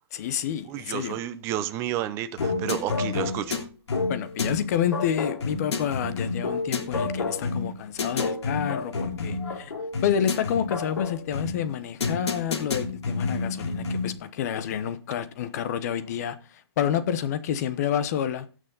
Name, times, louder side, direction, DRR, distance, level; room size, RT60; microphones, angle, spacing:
voice 1, 0.1-1.2 4.1-9.7 10.0-18.5, left 9 dB, 40° left, 0.9 m, -29 dB
voice 2, 0.7-3.7, right 12 dB, 20° right, 0.7 m, -31 dB
sound 1, 2.4-14.2, left 4 dB, 85° left, 3.1 m, -29 dB
17.0 x 6.4 x 3.9 m
hypercardioid pair, 155°, 14 cm